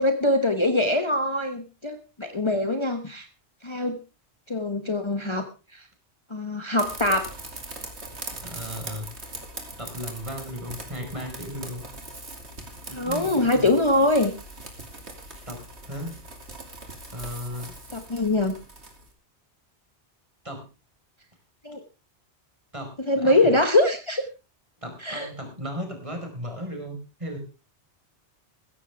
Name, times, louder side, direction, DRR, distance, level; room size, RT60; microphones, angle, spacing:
voice 1, 0.0-3.3 3.6-4.0 4.5-5.4 5.7-5.8 6.3-7.3 12.9-14.3 17.9-18.5 21.6-21.8 23.1-24.2 25.0-25.3, left 2 dB, 25° left, 5 dB, 1.3 m, -23 dB
sound 1, 6.8-19.1, right 2 dB, 70° right, 3.1 m, -41 dB
voice 2, 8.4-9.1 9.8-11.8 12.9-13.7 15.5-16.2 17.1-17.7 20.4-20.7 22.7-23.5 24.8-27.4, equal, 25° right, 3 dB, 4.9 m, -36 dB
16.0 x 15.0 x 3.5 m, 0.31 s
omnidirectional pair, 1.2 m